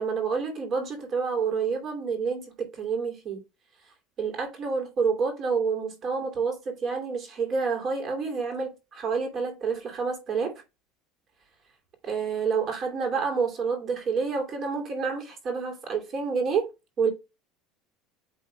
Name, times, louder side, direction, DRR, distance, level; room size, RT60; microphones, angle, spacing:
voice 1, 0.0-3.4 4.2-10.5 12.0-16.7 17.0-17.1, right 5 dB, 35° right, 2.7 m, -28 dB
9.1 x 3.8 x 3.3 m
cardioid pair, 140°, 0 cm